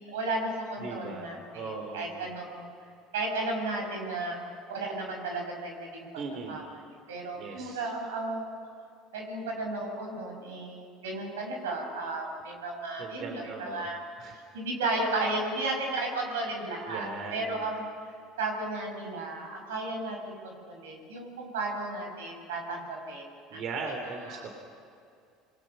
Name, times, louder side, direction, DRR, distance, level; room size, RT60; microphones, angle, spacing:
voice 1, 0.0-2.7 3.1-4.3 4.7-6.1 6.5-8.5 9.1-14.0 14.5-17.9 18.4-23.3 23.5-23.6 24.0-24.4, right 2 dB, 90° right, 1 dB, 5.6 m, -34 dB
voice 2, 0.8-1.3 1.5-2.2 6.2-6.6 7.4-7.8 12.9-13.8 14.2-14.4 16.9-17.6 23.5-24.5, right 4 dB, 55° right, 3 dB, 3.5 m, -38 dB
26.5 x 22.0 x 5.8 m, 2.4 s
hypercardioid pair, 85°, 0 cm